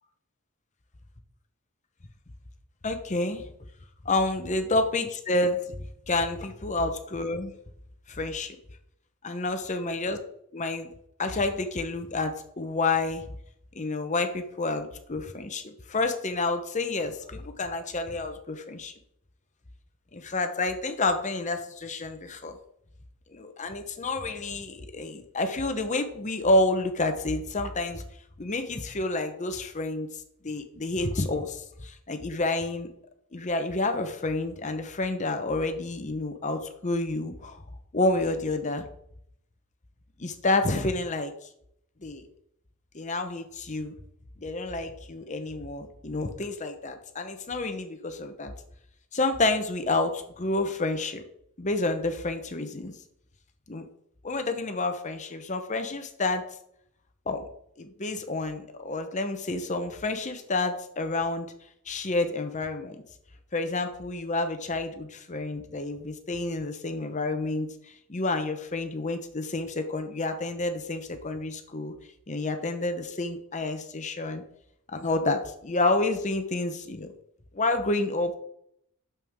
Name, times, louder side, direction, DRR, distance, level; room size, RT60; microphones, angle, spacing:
voice 1, 2.8-3.5 4.0-5.6 6.1-7.5 8.1-8.6 9.2-10.2 10.5-10.9 11.2-13.2 13.7-18.9 20.1-22.6 23.3-28.0 28.4-30.1 30.4-32.9 33.3-37.6 37.9-38.9 40.2-41.3 42.0-42.2 42.9-43.9 44.4-48.5 49.1-51.2 51.6-52.9 53.7-53.9 54.2-56.4 57.3-57.4 57.8-61.5 61.9-63.0 63.5-67.7 68.1-71.9 72.3-74.4 74.9-77.1 77.5-78.4, left 2 dB, 35° left, 7 dB, 0.9 m, -29 dB
8.9 x 7.0 x 3.6 m, 0.72 s
head